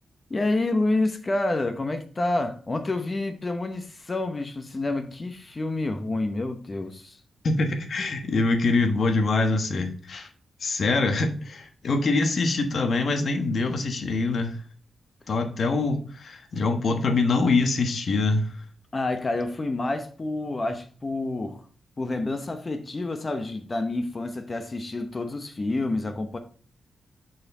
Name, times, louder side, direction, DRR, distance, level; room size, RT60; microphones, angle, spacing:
voice 1, 0.3-7.2 18.9-21.6 22.0-26.4, left 2 dB, 30° left, 0.8 m, -28 dB
voice 2, 7.4-10.3 10.6-14.6 15.3-18.5, left 3 dB, 55° left, 1.1 m, -24 dB
6.3 x 4.4 x 4.1 m
wide cardioid pair, 115°, 0 cm